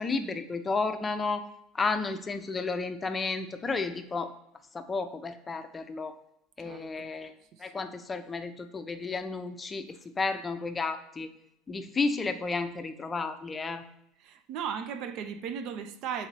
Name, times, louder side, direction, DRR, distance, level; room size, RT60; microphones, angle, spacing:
voice 1, 0.0-1.5 1.7-4.3 4.7-6.1 6.6-7.3 7.6-11.3 11.7-13.8, left 3 dB, 25° left, 0.5 m, -32 dB
voice 2, 14.2-16.3, right 7 dB, 60° right, 0.4 m, -36 dB
3.9 x 2.7 x 4.6 m
supercardioid pair, 95°, 0 cm